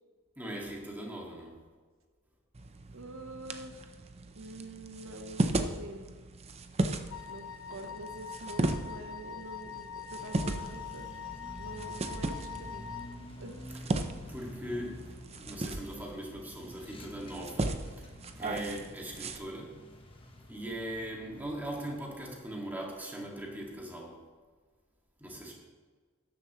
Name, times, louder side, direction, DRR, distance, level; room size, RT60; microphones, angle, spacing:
voice 1, 0.4-1.6 14.3-19.8 20.5-24.2 25.2-25.5, right 1 dB, 10° right, -2 dB, 1.9 m, -40 dB
sound 1, 2.5-19.4, right 2 dB, 30° right, 0.6 m, -37 dB
voice 2, 2.9-4.0 4.3-6.1 7.2-11.1 11.6-12.9 13.4-13.6, right 1 dB, 70° right, 5 dB, 1.0 m, -46 dB
Wind instrument woodwind instrument, 7.1-13.2, left 8 dB, 75° left, 0.9 m, -43 dB
sound 2, 10.2-21.8, left 1 dB, 25° left, 1.1 m, -49 dB
13.5 x 10.5 x 3.0 m, 1.5 s
head